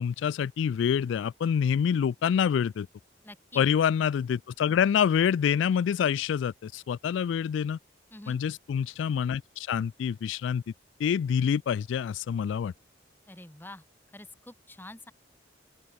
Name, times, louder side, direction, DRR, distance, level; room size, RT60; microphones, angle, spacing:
voice 1, 0.0-2.9 3.6-7.8 8.3-10.6 11.0-12.7, left 8 dB, 80° left, 0.3 m, -26 dB
voice 2, 3.2-3.6 8.1-8.4 13.3-13.8 14.1-15.1, left 1 dB, 10° left, 1.3 m, -46 dB
open air
head